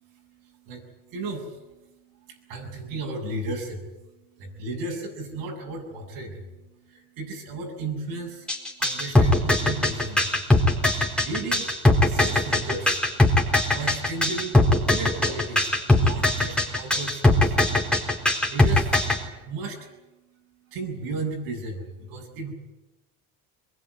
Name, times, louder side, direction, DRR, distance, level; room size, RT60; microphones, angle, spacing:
voice 1, 0.0-22.5, right 3 dB, 75° right, -2 dB, 7.5 m, -36 dB
sound 1, 8.5-19.2, left 2 dB, 5° left, 4.4 m, -20 dB
22.5 x 21.0 x 9.7 m, 1.0 s
cardioid pair, 120°, 37 cm